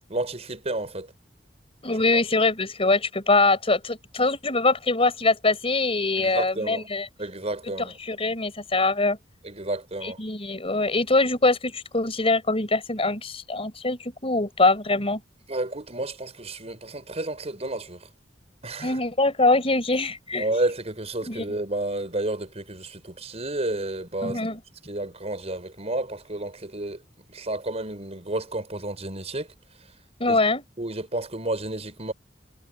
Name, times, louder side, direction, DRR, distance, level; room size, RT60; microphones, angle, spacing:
voice 1, 0.1-1.1 6.2-6.9 7.2-7.9 9.4-10.2 15.5-18.1 18.6-19.0 20.4-24.5 24.9-27.0 27.3-29.5 30.3-30.4 30.8-32.1, right 2 dB, 35° right, 5.4 m, -31 dB
voice 2, 1.8-7.1 7.8-9.2 10.0-15.2 18.8-20.5 21.3-21.4 24.2-24.6 30.2-30.6, left 3 dB, 30° left, 4.8 m, -23 dB
head